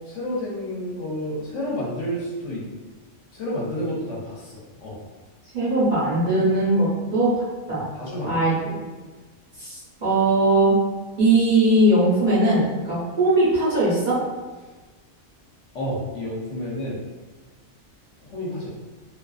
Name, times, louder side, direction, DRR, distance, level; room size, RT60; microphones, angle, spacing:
voice 1, 0.0-2.7 3.3-5.0 7.7-8.5 15.7-17.0 18.2-18.7, equal, 65° left, -5 dB, 0.9 m, -30 dB
voice 2, 5.5-7.8 8.3-8.5 9.6-10.8 11.2-14.2, right 2 dB, 40° right, -10 dB, 0.8 m, -20 dB
2.4 x 2.4 x 2.3 m, 1.3 s
omnidirectional pair, 1.4 m